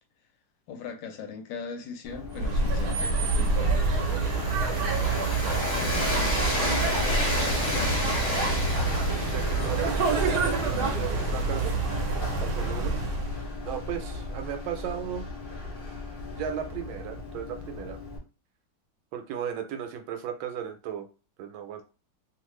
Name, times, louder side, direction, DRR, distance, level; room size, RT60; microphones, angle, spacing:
voice 1, 0.7-3.8, left 4 dB, 75° left, 5 dB, 1.3 m, -39 dB
Run, 2.0-18.2, left 3 dB, 50° left, 0.6 m, -38 dB
sound 1, 2.3-13.4, right 3 dB, 65° right, 1.1 m, -27 dB
Train, 3.2-13.1, equal, 30° left, 1.0 m, -31 dB
voice 2, 6.5-7.5 9.2-11.8 12.4-13.0 13.6-15.3 16.3-18.0 19.1-21.1 21.4-21.8, right 9 dB, 85° right, 6 dB, 1.4 m, -36 dB
3.0 x 2.4 x 3.1 m, 0.32 s
omnidirectional pair, 2.1 m